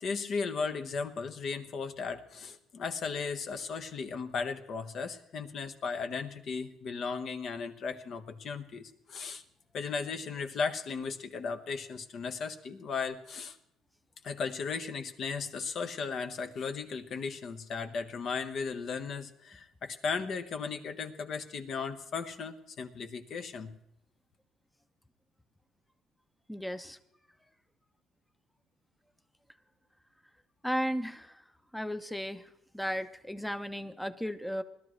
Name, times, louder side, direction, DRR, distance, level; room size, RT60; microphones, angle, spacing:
voice 1, 0.0-9.4 9.7-13.6 14.2-23.7, left 5 dB, 55° left, 8 dB, 1.2 m, -36 dB
voice 2, 26.5-27.0 30.6-31.4 31.7-34.6, equal, 5° left, 11 dB, 0.7 m, -35 dB
20.0 x 12.5 x 3.2 m, 0.78 s
cardioid pair, 110°, 0 cm